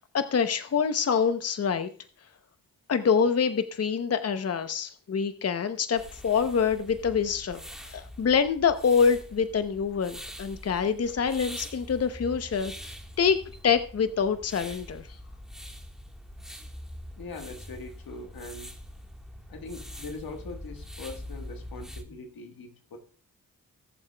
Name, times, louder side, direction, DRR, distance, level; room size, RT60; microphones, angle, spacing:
voice 1, 0.0-1.9 2.9-15.1, left 6 dB, 45° left, 10 dB, 0.7 m, -26 dB
sound 1, 6.0-22.0, equal, ahead, 1.4 m, -44 dB
voice 2, 17.2-18.7 19.5-23.0, left 3 dB, 85° left, 5 dB, 1.5 m, -41 dB
19.5 x 7.1 x 2.2 m, 0.42 s
cardioid pair, 75°, 34 cm